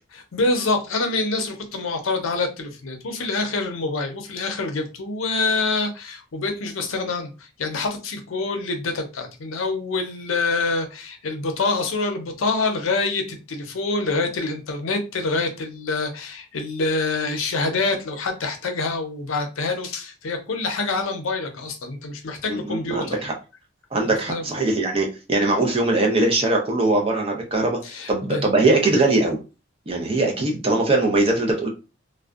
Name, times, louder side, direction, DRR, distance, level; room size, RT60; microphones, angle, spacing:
voice 1, 0.3-23.2 24.0-24.7 27.8-28.4, left 3 dB, 80° left, 0.5 m, -26 dB
voice 2, 22.5-23.3 23.9-27.8 28.1-29.4 29.9-31.7, right 2 dB, 30° right, 0.5 m, -21 dB
2.5 x 2.1 x 2.3 m
head